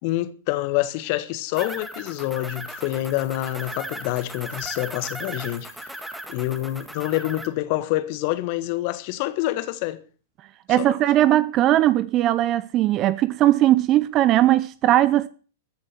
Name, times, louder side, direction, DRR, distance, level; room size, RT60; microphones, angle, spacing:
voice 1, 0.0-5.7 6.3-10.0 10.8-10.9, left 16 dB, 50° left, 1.4 m, -27 dB
sound 1, 1.5-7.5, right 1 dB, 5° right, 1.9 m, -37 dB
voice 2, 10.7-15.3, right 13 dB, 35° right, 0.6 m, -19 dB
14.5 x 7.3 x 8.2 m
hypercardioid pair, 105°, 0 cm